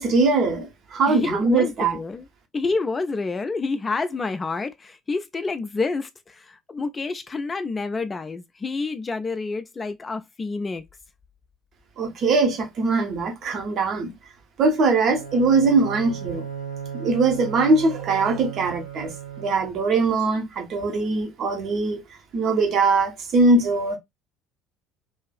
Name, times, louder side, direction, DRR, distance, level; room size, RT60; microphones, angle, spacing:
voice 1, 0.0-2.0 12.0-14.1 14.6-16.5 16.9-22.0 22.3-24.0, right 3 dB, 45° right, 0.8 m, -21 dB
voice 2, 1.1-2.3 2.5-10.8, left 3 dB, 25° left, 0.3 m, -28 dB
Bowed string instrument, 15.0-19.9, right 8 dB, 80° left, 0.5 m, -36 dB
2.7 x 2.3 x 2.2 m
figure-of-eight pair, 60°, 0 cm